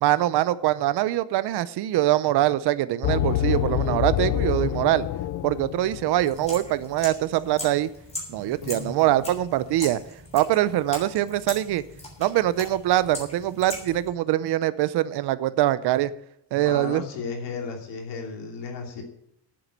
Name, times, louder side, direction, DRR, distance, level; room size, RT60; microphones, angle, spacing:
voice 1, 0.0-5.1 5.4-7.9 8.3-10.0 10.3-11.8 12.2-16.1 16.5-17.0, right 14 dB, 65° right, 0.7 m, -23 dB
sound 1, 3.0-6.4, left 11 dB, 45° left, 0.4 m, -26 dB
sound 2, 6.2-14.1, left 2 dB, 15° left, 3.2 m, -40 dB
voice 2, 8.4-9.3 16.5-19.0, left 5 dB, 75° left, 2.8 m, -35 dB
9.2 x 7.8 x 8.4 m
cardioid pair, 160°, 43 cm